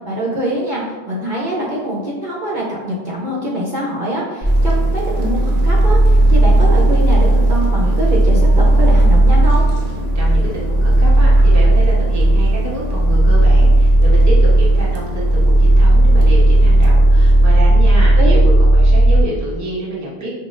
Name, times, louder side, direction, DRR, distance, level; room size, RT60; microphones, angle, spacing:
voice 1, 0.0-9.6 18.2-18.4, right 1 dB, 55° right, -4 dB, 0.9 m, -23 dB
sound 1, 4.4-19.2, right 1 dB, 55° left, 1.1 m, -12 dB
sound 2, 4.4-17.5, right 2 dB, 80° right, 1.0 m, -34 dB
voice 2, 10.1-20.3, right 1 dB, 20° right, -6 dB, 0.8 m, -27 dB
6.0 x 2.4 x 2.5 m, 1.2 s
omnidirectional pair, 1.0 m